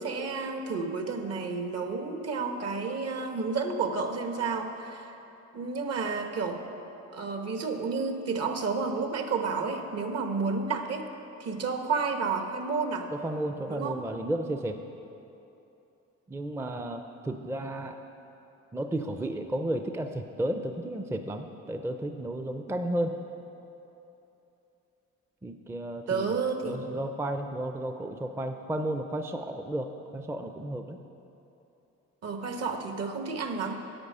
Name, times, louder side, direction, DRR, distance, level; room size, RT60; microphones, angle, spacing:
voice 1, 0.0-5.2 5.5-6.6 7.1-11.1 11.4-13.1 13.7-14.0 26.1-26.8 32.2-33.8, right 4 dB, 55° right, 5 dB, 1.1 m, -31 dB
voice 2, 13.1-14.8 16.3-18.0 18.7-23.2 25.4-26.4 26.6-31.0, right 1 dB, 10° right, 6 dB, 0.4 m, -33 dB
10.0 x 8.0 x 5.4 m, 2.9 s
cardioid pair, 90°, 30 cm